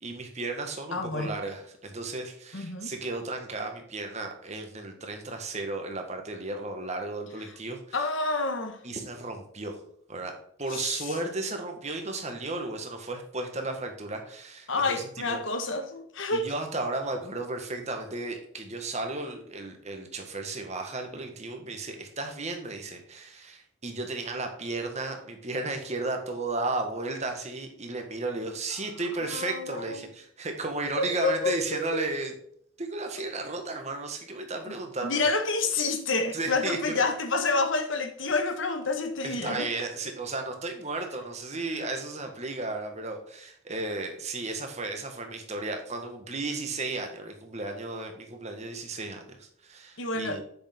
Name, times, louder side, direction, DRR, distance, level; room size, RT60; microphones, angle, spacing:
voice 1, 0.0-8.0 8.8-9.8 10.1-15.4 16.3-32.3 32.8-35.3 36.3-37.0 39.2-50.4, right 2 dB, 35° right, 1.7 m, -34 dB
voice 2, 0.9-1.3 2.5-2.9 7.9-8.8 10.7-11.1 14.7-16.5 29.2-30.0 31.0-32.1 35.0-39.7 50.0-50.4, left 3 dB, 65° left, 1.4 m, -29 dB
8.2 x 6.7 x 3.6 m
head